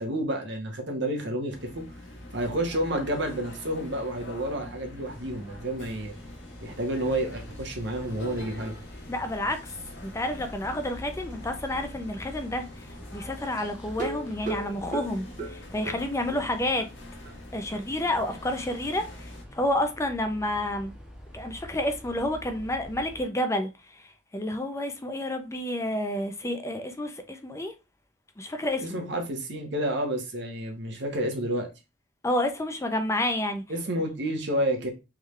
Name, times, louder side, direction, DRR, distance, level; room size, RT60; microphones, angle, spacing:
voice 1, 0.0-1.9 2.3-6.1 6.6-8.7 28.8-31.7 33.7-34.9, right 1 dB, 65° right, 1.1 m, -30 dB
sound 1, 1.5-19.4, left 1 dB, 80° left, 1.1 m, -44 dB
sound 2, 5.0-23.2, equal, 5° right, 1.1 m, -48 dB
voice 2, 9.1-9.6 10.0-12.9 13.1-16.9 17.5-20.9 21.3-23.7 24.3-27.7 28.4-29.0 32.2-33.6, left 1 dB, 15° left, 0.5 m, -29 dB
sound 3, 13.9-16.5 16.8-16.9 17.2-17.3 17.7-17.8, right 3 dB, 45° right, 1.3 m, -36 dB
3.6 x 3.3 x 3.1 m
head